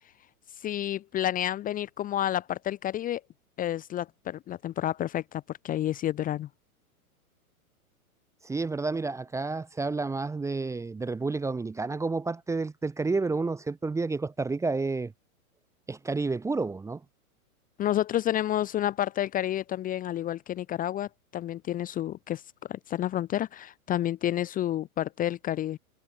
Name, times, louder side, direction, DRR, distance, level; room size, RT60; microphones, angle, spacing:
voice 1, 0.6-3.2 3.6-6.5 17.8-22.4 22.7-25.8, left 12 dB, 20° left, 0.9 m, -30 dB
voice 2, 8.4-15.1 15.9-17.0, right 3 dB, 5° right, 1.0 m, -30 dB
hypercardioid pair, 130°, 44 cm